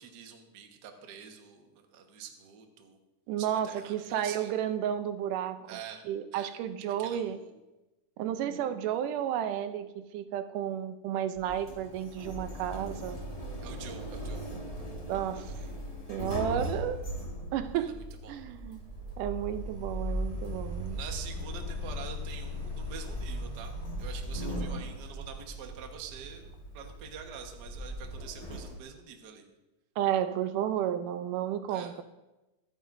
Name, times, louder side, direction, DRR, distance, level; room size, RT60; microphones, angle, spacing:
voice 1, 0.0-3.0 3.4-4.5 5.7-6.0 6.3-6.5 7.0-7.6 13.6-14.4 17.8-17.9 18.2-18.4 20.9-23.7 24.0-29.4 31.7-31.9, right 7 dB, 55° right, 3 dB, 1.2 m, -46 dB
voice 2, 3.3-5.8 6.1-7.4 8.2-13.2 15.1-15.5 16.1-17.1 17.5-17.9 18.3-18.8 19.2-21.0 30.0-32.0, right 10 dB, 80° right, 9 dB, 2.2 m, -32 dB
Sliding door, 11.3-28.8, equal, 45° left, 0.4 m, -38 dB
24.5 x 8.9 x 2.6 m, 1.0 s
omnidirectional pair, 3.8 m